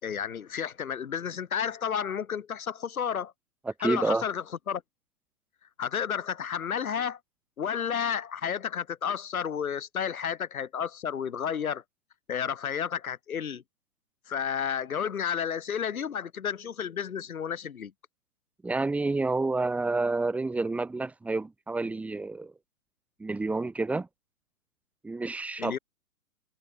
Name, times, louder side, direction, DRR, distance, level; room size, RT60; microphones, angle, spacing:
voice 1, 0.0-3.3 3.8-4.8 5.8-7.2 7.6-11.8 12.3-13.6 14.3-17.9 25.6-25.8, left 8 dB, 60° left, 4.3 m, -31 dB
voice 2, 3.6-4.2 18.6-22.5 23.2-24.1 25.0-25.8, right 3 dB, 5° right, 1.2 m, -29 dB
figure-of-eight pair, 135°, 47 cm